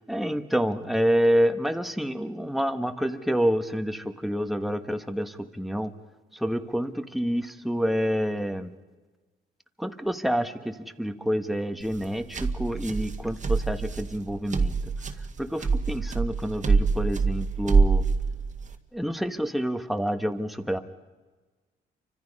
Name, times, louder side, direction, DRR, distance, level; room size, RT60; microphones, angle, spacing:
voice 1, 0.1-5.9 6.3-8.7 9.8-14.8 15.4-18.0 18.9-20.8, equal, ahead, 7 dB, 1.4 m, -28 dB
sound 1, 11.8-18.7, right 4 dB, 40° right, 1.9 m, -25 dB
29.0 x 25.0 x 5.5 m, 1.3 s
cardioid pair, 90°, 20 cm